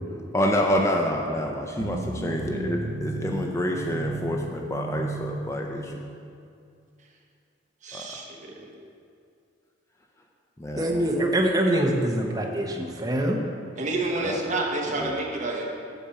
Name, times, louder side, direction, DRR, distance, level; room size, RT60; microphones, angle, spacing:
voice 1, 0.3-5.8 7.9-8.0 10.6-11.1 14.2-14.4 15.0-15.1, equal, 15° left, 1 dB, 0.4 m, -27 dB
sound 1, 1.8-6.4, right 2 dB, 85° right, 0.5 m, -34 dB
voice 2, 7.8-8.7 13.8-15.6, right 2 dB, 40° right, 0 dB, 1.1 m, -29 dB
voice 3, 10.8-13.4, right 1 dB, 20° right, 1 dB, 0.8 m, -24 dB
8.1 x 4.3 x 7.1 m, 2.4 s
head